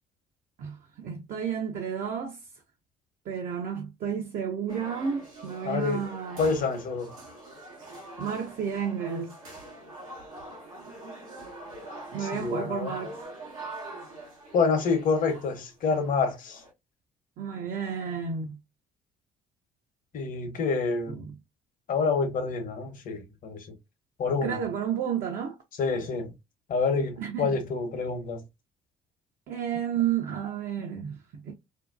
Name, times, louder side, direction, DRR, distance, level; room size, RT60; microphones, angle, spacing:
voice 1, 0.6-2.4 3.3-6.5 8.2-9.4 12.1-13.2 17.4-18.5 21.2-21.3 24.4-25.6 27.2-27.6 29.5-31.5, right 8 dB, 50° right, 0.6 m, -31 dB
sound 1, 4.7-16.7, right 1 dB, 90° right, 0.9 m, -44 dB
voice 2, 5.7-6.0 6.4-7.1 12.2-12.9 14.5-16.6 20.1-21.2 21.9-23.7 24.2-24.6 25.8-26.3 26.7-28.4, left 4 dB, 50° left, 0.8 m, -27 dB
2.7 x 2.1 x 2.3 m
hypercardioid pair, 55°, 18 cm